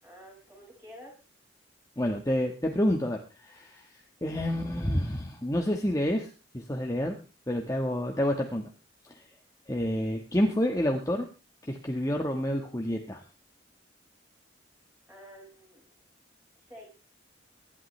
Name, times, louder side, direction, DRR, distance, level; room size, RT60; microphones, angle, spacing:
voice 1, 0.0-1.1 15.1-15.9 16.7-17.0, equal, 10° right, -2 dB, 6.1 m, -49 dB
voice 2, 2.0-3.8 4.2-7.2 7.5-8.7 9.7-11.3 11.7-13.2, equal, 15° left, 2 dB, 1.4 m, -28 dB
24.0 x 11.5 x 3.3 m, 0.32 s
head